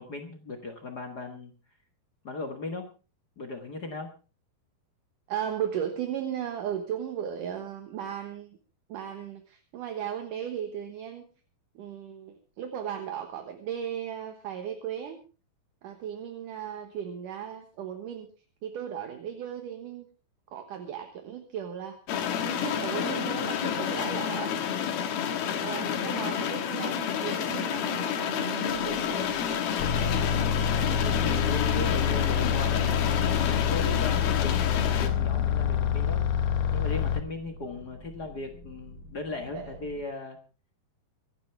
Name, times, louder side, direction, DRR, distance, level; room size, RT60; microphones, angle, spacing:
voice 1, 0.0-1.5 2.2-2.9 3.4-4.1 30.9-33.4 33.6-36.2 36.7-40.4, left 3 dB, 50° left, 4 dB, 1.1 m, -37 dB
voice 2, 5.3-8.6 8.9-11.3 11.8-15.2 15.8-18.3 18.6-20.1 20.5-22.0 22.4-24.6 25.6-29.4 31.1-31.4 39.5-39.7, right 9 dB, 65° right, 6 dB, 2.7 m, -36 dB
sound 1, 22.1-35.1, left 8 dB, 85° left, 3.5 m, -29 dB
sound 2, 28.7-40.0, left 1 dB, 25° left, 4.6 m, -48 dB
sound 3, 29.8-37.2, left 8 dB, 70° left, 2.4 m, -27 dB
25.0 x 11.5 x 3.4 m, 0.35 s
omnidirectional pair, 4.3 m